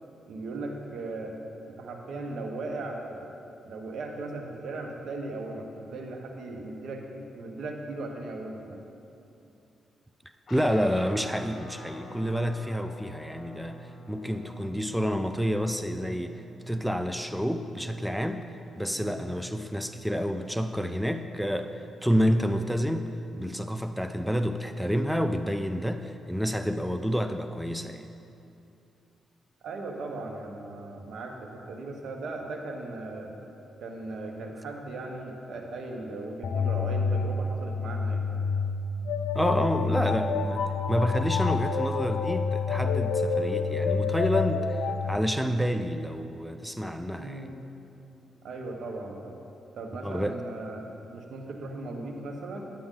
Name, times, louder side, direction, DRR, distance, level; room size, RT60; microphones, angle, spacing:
voice 1, 0.2-1.4 1.7-3.3 3.6-8.8 18.9-19.2 29.6-33.3 33.8-38.4 47.2-47.6 48.4-49.4 49.7-50.8 51.1-52.6, right 2 dB, 70° right, 2 dB, 1.2 m, -38 dB
Guitar, 10.5-20.3, equal, 45° left, 1.6 m, -47 dB
voice 2, 10.5-23.1 23.4-28.1 39.3-47.5 50.0-50.3, equal, ahead, 8 dB, 0.3 m, -29 dB
sound 1, 36.4-45.2, left 4 dB, 80° left, 0.4 m, -28 dB
10.0 x 8.8 x 3.8 m, 2.7 s
cardioid pair, 100°, 0 cm